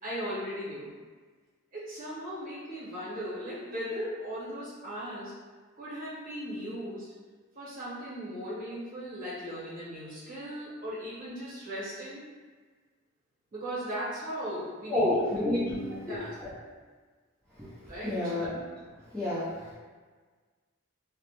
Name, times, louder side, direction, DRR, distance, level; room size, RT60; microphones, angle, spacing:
voice 1, 0.0-0.9 1.7-5.3 5.8-7.1 7.5-12.2 13.5-15.1 16.1-16.3 17.9-18.3, equal, 40° right, -10 dB, 1.0 m, -37 dB
voice 2, 14.9-16.5 17.6-17.7 18.0-18.5 19.1-19.7, left 1 dB, 5° left, -13 dB, 0.6 m, -30 dB
2.4 x 2.1 x 2.9 m, 1.4 s
head